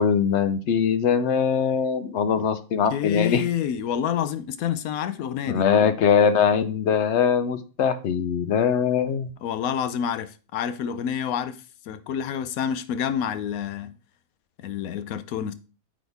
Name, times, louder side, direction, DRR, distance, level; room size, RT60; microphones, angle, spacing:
voice 1, 0.0-3.4 5.5-9.3, left 7 dB, 65° left, 0.8 m, -22 dB
voice 2, 2.9-5.7 9.4-13.9 14.6-15.5, left 9 dB, 85° left, 1.1 m, -28 dB
8.6 x 4.2 x 3.3 m
omnidirectional pair, 1.5 m